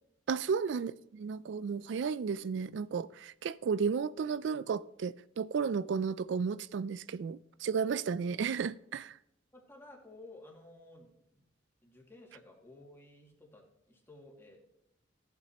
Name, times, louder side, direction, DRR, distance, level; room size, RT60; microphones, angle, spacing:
voice 1, 0.3-9.2, right 6 dB, 65° right, 0.3 m, -33 dB
voice 2, 9.5-11.5 11.8-14.6, left 2 dB, 15° left, 2.2 m, -54 dB
14.5 x 8.3 x 2.9 m
head